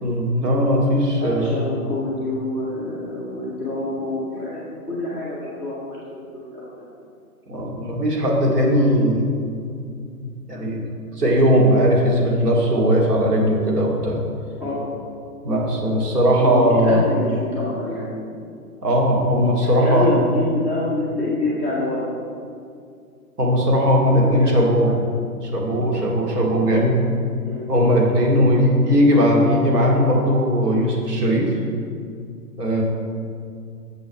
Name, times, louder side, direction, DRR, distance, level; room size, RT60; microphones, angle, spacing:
voice 1, 0.0-1.6 7.5-9.3 10.5-10.8 11.2-14.2 15.4-17.0 18.8-20.2 23.4-25.0 25.4-27.0 27.7-31.5 32.6-32.8, equal, 85° right, -2 dB, 2.4 m, -18 dB
voice 2, 1.2-6.9 14.6-14.9 15.9-16.0 16.4-18.5 19.6-22.1 24.1-24.6 27.4-27.7, left 2 dB, 5° right, -8 dB, 0.5 m, -27 dB
7.4 x 6.9 x 5.3 m, 2.3 s
hypercardioid pair, 145°, 46 cm